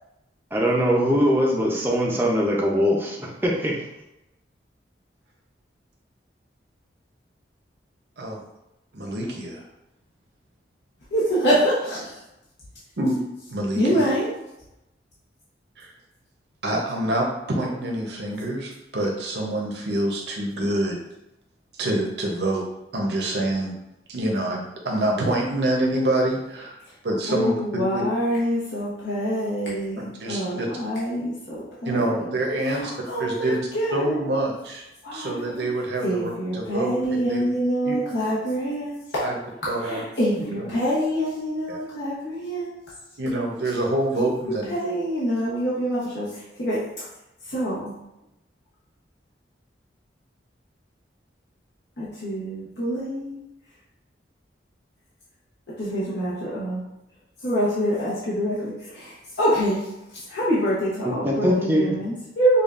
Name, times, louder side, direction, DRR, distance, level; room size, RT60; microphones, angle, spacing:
voice 1, 0.5-3.8 61.0-62.0, equal, 10° right, -3 dB, 0.5 m, -22 dB
voice 2, 8.9-9.6 13.0-13.2 13.5-14.1 15.8-15.9 16.6-21.0 21.8-22.6 22.9-23.7 24.1-26.7 27.0-27.6 27.9-28.0 30.0-30.7 31.9-32.9 33.2-33.6 33.9-34.8 35.1-37.5 37.8-38.0 39.2-39.3 39.7-40.0 40.3-40.4 41.7-41.8 43.2-44.7, right 1 dB, 65° right, 0 dB, 0.7 m, -26 dB
voice 3, 11.1-12.2 13.7-14.3 27.3-32.1 32.6-34.2 35.0-35.6 36.0-39.2 39.8-42.7 44.2-44.3 44.7-46.8 47.5-47.9 52.0-53.4 55.8-56.8 57.4-59.8 60.3-62.6, equal, 70° left, -8 dB, 1.0 m, -25 dB
5.2 x 2.3 x 2.5 m, 0.90 s
head